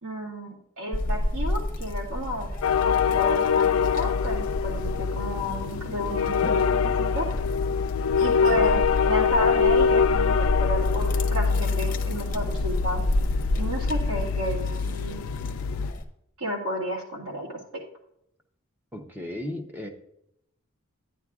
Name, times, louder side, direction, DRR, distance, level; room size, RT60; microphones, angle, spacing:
voice 1, 0.0-2.5 2.8-7.3 8.2-13.0 13.6-15.2 16.4-17.6, equal, 85° right, -2 dB, 2.0 m, -31 dB
sound 1, 0.9-16.0, left 1 dB, 40° left, 0.7 m, -32 dB
sound 2, 2.6-15.9, left 6 dB, 75° left, 0.3 m, -24 dB
voice 2, 18.9-19.9, left 1 dB, 10° right, 3 dB, 0.7 m, -35 dB
10.5 x 9.8 x 2.4 m, 0.76 s
head